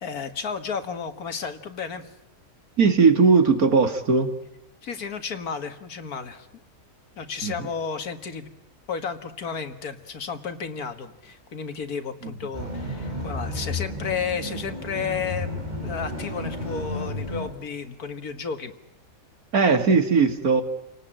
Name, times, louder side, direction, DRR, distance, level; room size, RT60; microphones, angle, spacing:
voice 1, 0.0-2.1 4.8-6.5 7.2-8.5 8.9-15.6 15.8-18.7, left 6 dB, 80° left, 9 dB, 2.2 m, -32 dB
voice 2, 2.8-4.3 7.4-7.5 12.2-12.3 19.5-20.6, right 5 dB, 75° right, 7 dB, 2.6 m, -18 dB
sound 1, 12.5-17.5, left 1 dB, 30° right, 5.1 m, -32 dB
29.5 x 18.5 x 8.9 m, 0.88 s
omnidirectional pair, 1.6 m